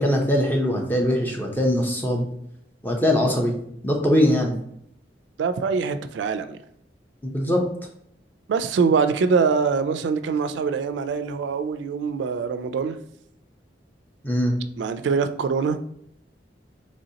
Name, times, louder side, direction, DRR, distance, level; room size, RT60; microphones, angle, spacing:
voice 1, 0.0-2.3 2.8-3.5 3.8-4.5 7.2-7.6 14.2-14.5, equal, 10° left, 0.6 m, -21 dB
voice 2, 5.4-6.6 8.5-13.0 14.8-15.8, right 5 dB, 80° right, 0.3 m, -23 dB
4.0 x 3.1 x 2.8 m
head